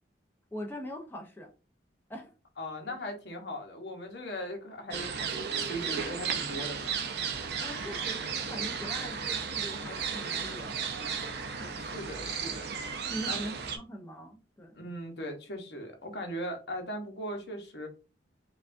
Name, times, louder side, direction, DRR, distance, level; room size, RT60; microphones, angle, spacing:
voice 1, 0.5-1.5 2.1-2.3 2.9-3.0 7.6-10.9 11.6-11.8 13.1-14.8, equal, 10° left, 0.7 m, -42 dB
voice 2, 2.6-7.1 11.8-12.7 13.3-13.5 14.7-17.9, equal, 65° left, 1.0 m, -39 dB
sound 1, 4.9-13.8, right 6 dB, 60° right, 0.6 m, -34 dB
4.8 x 2.4 x 2.6 m
head